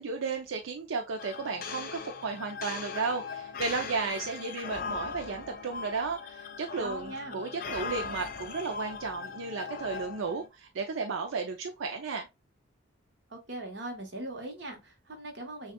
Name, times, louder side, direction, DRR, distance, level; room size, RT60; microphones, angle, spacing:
voice 1, 0.0-12.3, right 4 dB, 90° right, 0.5 m, -34 dB
sound 1, 1.2-10.5, left 5 dB, 45° left, 0.5 m, -39 dB
voice 2, 6.7-7.4 13.3-15.7, right 1 dB, 65° right, 1.2 m, -40 dB
6.2 x 2.4 x 2.2 m
head